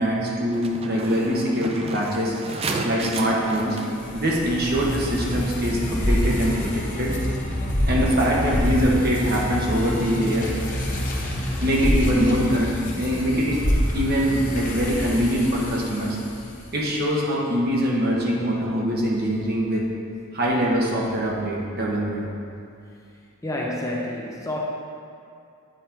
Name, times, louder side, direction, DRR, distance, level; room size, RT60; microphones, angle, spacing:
voice 1, 0.0-2.3 2.8-3.8 4.1-7.1 7.9-10.5 11.6-13.6 13.9-16.2 16.7-19.9 20.3-22.3, equal, 50° right, -3 dB, 1.2 m, -23 dB
sound 1, 0.5-6.0, right 3 dB, 30° right, 0.4 m, -34 dB
sound 2, 3.3-16.7, equal, 40° left, 0.9 m, -27 dB
voice 2, 23.4-24.6, left 1 dB, 15° left, -2 dB, 0.7 m, -29 dB
9.1 x 4.3 x 4.6 m, 2.5 s
head